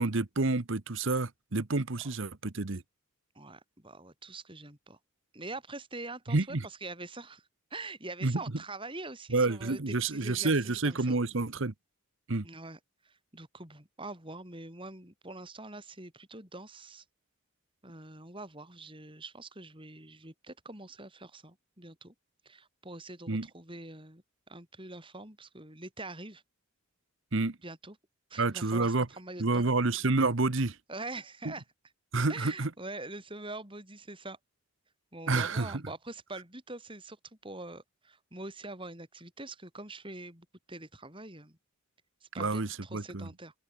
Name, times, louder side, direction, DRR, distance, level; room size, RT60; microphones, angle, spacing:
voice 1, 0.0-2.8 6.3-6.7 8.2-8.4 9.3-11.7 12.3-12.5 23.3-23.5 27.3-27.6 28.4-29.1 29.4-30.8 31.4-31.5 32.1-32.7 35.3-35.8 42.4-43.3, right 3 dB, 60° right, 1.1 m, -29 dB
voice 2, 3.3-5.0 5.3-11.2 12.4-12.8 13.0-17.0 17.8-22.1 22.4-26.4 27.6-28.0 28.3-29.6 30.9-31.6 32.3-34.4 35.1-41.6 42.3-43.5, right 2 dB, 25° right, 5.9 m, -44 dB
open air
head